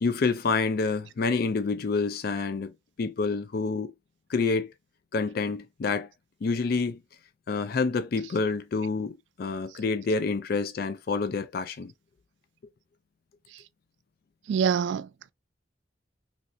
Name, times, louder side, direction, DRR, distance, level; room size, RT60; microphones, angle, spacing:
voice 1, 0.0-3.9 4.3-4.7 5.1-6.1 6.4-7.0 7.5-11.9, left 4 dB, 60° left, 0.4 m, -28 dB
voice 2, 14.5-15.3, right 7 dB, 85° right, 0.3 m, -26 dB
3.2 x 2.7 x 2.5 m
head